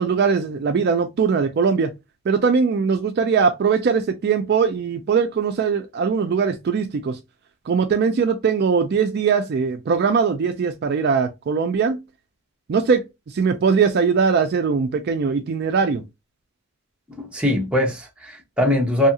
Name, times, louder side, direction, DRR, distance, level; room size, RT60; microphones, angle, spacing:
voice 1, 0.0-1.9 2.3-7.2 7.7-12.0 12.7-16.0, right 5 dB, 45° right, 0.3 m, -20 dB
voice 2, 17.2-19.1, left 1 dB, 5° right, 0.6 m, -21 dB
2.7 x 2.3 x 2.7 m
head